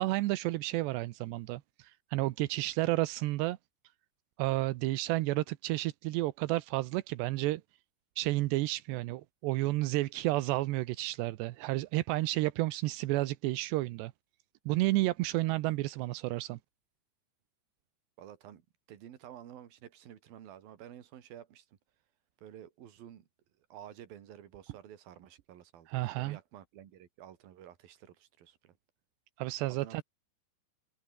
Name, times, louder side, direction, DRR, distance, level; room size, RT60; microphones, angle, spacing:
voice 1, 0.0-3.6 4.4-7.6 8.2-14.1 14.7-16.6 25.9-26.4 29.4-30.0, right 18 dB, 80° right, 2.7 m, -31 dB
voice 2, 18.2-18.6 18.9-21.7 22.4-23.3 23.7-28.8 29.7-30.0, right 10 dB, 55° right, 3.6 m, -51 dB
omnidirectional pair, 5.6 m